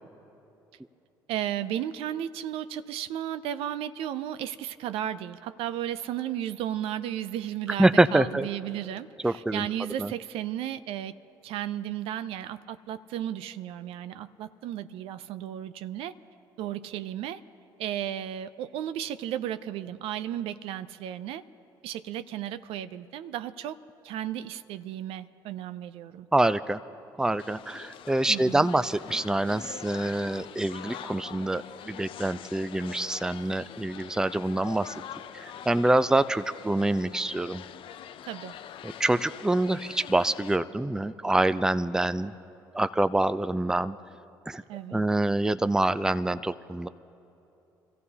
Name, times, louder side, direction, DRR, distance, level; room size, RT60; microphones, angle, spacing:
voice 1, 1.3-11.2 11.4-16.1 16.6-17.4 17.8-21.4 21.8-23.8 24.0-26.3 28.3-28.7 38.2-38.5 44.7-45.0, right 11 dB, 70° right, 12 dB, 0.5 m, -34 dB
voice 2, 7.8-8.5 9.2-9.7 10.0-10.1 26.3-26.8 27.2-34.9 35.3-37.6 38.8-42.3 42.7-44.0 44.5-44.6 44.9-46.9, right 2 dB, 5° right, 13 dB, 0.4 m, -26 dB
sound 1, 27.4-40.6, left 9 dB, 60° left, 0.6 m, -44 dB
25.5 x 15.0 x 2.8 m, 2.9 s
hypercardioid pair, 55°, 10 cm